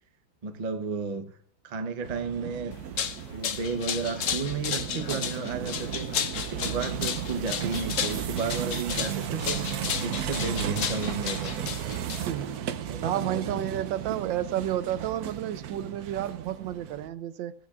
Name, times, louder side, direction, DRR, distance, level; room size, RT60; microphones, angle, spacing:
voice 1, 0.4-1.3 1.6-2.8 3.3-6.1 6.3-9.7 10.0-11.6 12.9-13.7 14.1-14.2, right 4 dB, 45° right, 0.5 m, -33 dB
sound 1, 2.0-17.1, right 9 dB, 65° right, 1.0 m, -35 dB
sound 2, 2.7-12.6, left 8 dB, 65° left, 0.8 m, -33 dB
voice 2, 12.3-12.6 13.0-17.5, right 11 dB, 85° right, 1.4 m, -31 dB
15.5 x 15.0 x 2.4 m
omnidirectional pair, 2.0 m